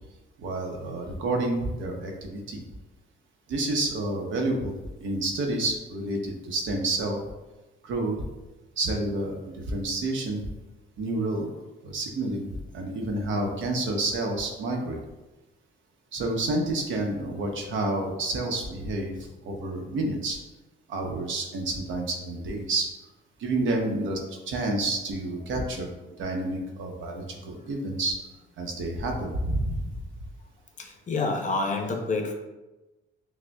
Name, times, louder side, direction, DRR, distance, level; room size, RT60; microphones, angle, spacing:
voice 1, 0.4-2.6 3.5-7.2 7.8-8.2 8.8-10.4 11.0-11.5 11.8-12.5 12.7-15.0 16.1-19.2 19.4-20.4 20.9-22.9 23.4-25.9 26.2-28.2 28.6-30.0, right 2 dB, 75° right, 2 dB, 0.7 m, -29 dB
voice 2, 30.8-32.3, left 3 dB, 40° left, 3 dB, 0.6 m, -28 dB
6.0 x 2.1 x 2.2 m, 1.1 s
cardioid pair, 90°, 20 cm